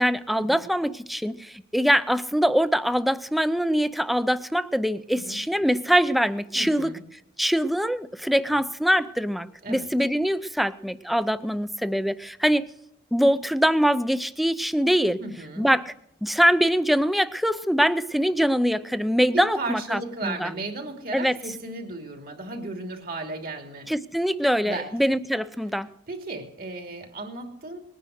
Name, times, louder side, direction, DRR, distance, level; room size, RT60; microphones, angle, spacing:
voice 1, 0.0-6.9 7.4-12.7 13.1-15.2 15.6-15.8 16.2-20.5 21.1-21.4 23.9-25.9, equal, ahead, 13 dB, 0.5 m, -23 dB
voice 2, 6.5-7.0 9.6-9.9 15.2-15.7 19.3-23.9 24.6-25.0 26.1-27.8, right 2 dB, 50° right, 3 dB, 2.9 m, -35 dB
20.5 x 10.0 x 6.5 m, 0.79 s
head